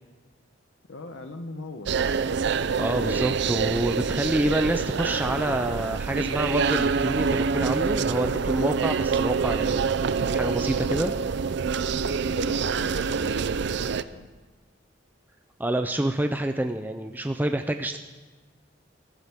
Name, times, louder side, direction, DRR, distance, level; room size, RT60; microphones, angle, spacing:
voice 1, 0.9-2.0 11.0-13.4 13.9-14.3, left 2 dB, 90° left, 6 dB, 1.0 m, -41 dB
sound 1, 1.9-14.0, right 5 dB, 65° right, 0.5 m, -26 dB
voice 2, 2.8-9.9 10.3-11.1 15.6-18.0, right 1 dB, 10° right, 6 dB, 0.5 m, -27 dB
22.0 x 13.5 x 3.6 m, 1.3 s
head